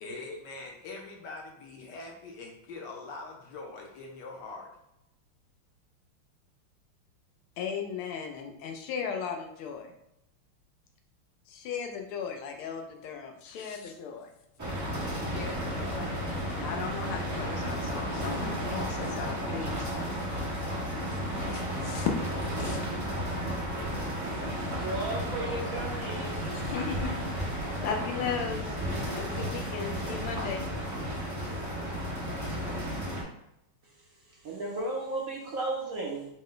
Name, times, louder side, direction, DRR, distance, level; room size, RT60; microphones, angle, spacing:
voice 1, 0.0-4.7, left 3 dB, 65° left, 1 dB, 1.1 m, -43 dB
voice 2, 7.6-9.9 11.5-14.3 15.3-19.9 20.5-20.6 21.5-22.1 22.6-23.1 26.6-27.2 27.5-28.8 29.1-30.7, left 7 dB, 85° left, 4 dB, 1.6 m, -36 dB
sound 1, 14.6-33.2, equal, 30° right, 0.3 m, -33 dB
voice 3, 24.7-26.4 34.4-36.3, right 2 dB, 65° right, -2 dB, 0.8 m, -34 dB
5.1 x 2.2 x 3.8 m, 0.82 s
omnidirectional pair, 2.3 m